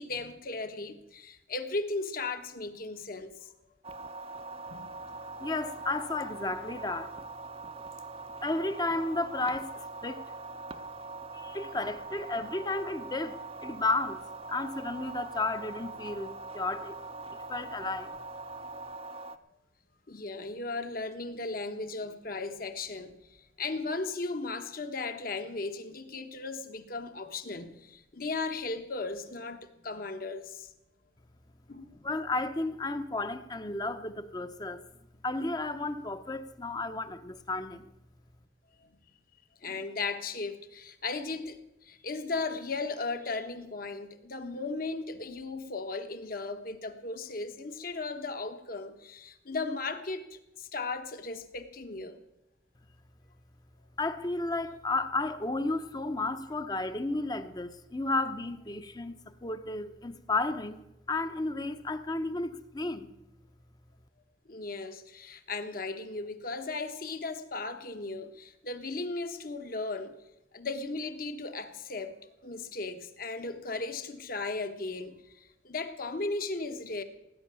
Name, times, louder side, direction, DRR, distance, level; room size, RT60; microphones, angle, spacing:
voice 1, 0.0-3.5 4.7-4.9 11.6-11.8 20.1-30.7 31.7-31.9 39.6-52.2 64.5-70.1 70.5-72.1 72.4-77.0, left 3 dB, 50° left, 1.3 m, -36 dB
sound 1, 3.8-19.4, right 3 dB, 30° right, 0.7 m, -42 dB
voice 2, 5.4-7.1 8.4-10.2 11.3-17.0 17.5-18.1 32.0-34.8 35.2-37.9 54.0-60.8 61.1-63.1, left 2 dB, 20° left, 0.8 m, -33 dB
18.0 x 9.6 x 6.9 m
head